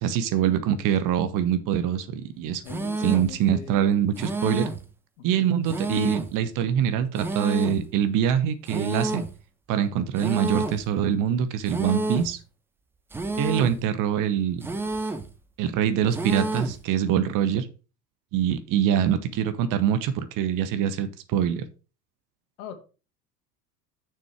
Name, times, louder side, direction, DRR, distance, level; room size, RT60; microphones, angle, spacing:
voice 1, 0.0-2.6 3.0-4.7 5.2-9.2 9.7-12.4 13.4-14.7 15.6-17.7 18.3-21.6, right 9 dB, 40° right, 1.0 m, -24 dB
voice 2, 2.6-4.0 5.2-5.5 22.6-22.8, left 8 dB, 60° left, 2.0 m, -41 dB
sound 1, 2.7-3.4 4.2-4.9 5.7-6.4 7.2-7.9 8.7-9.4 10.2-10.9 11.7-12.4 13.1-13.8 14.6-15.3 16.1-16.8, right 2 dB, 5° right, 0.4 m, -30 dB
6.6 x 6.5 x 4.6 m
figure-of-eight pair, 85°, 49 cm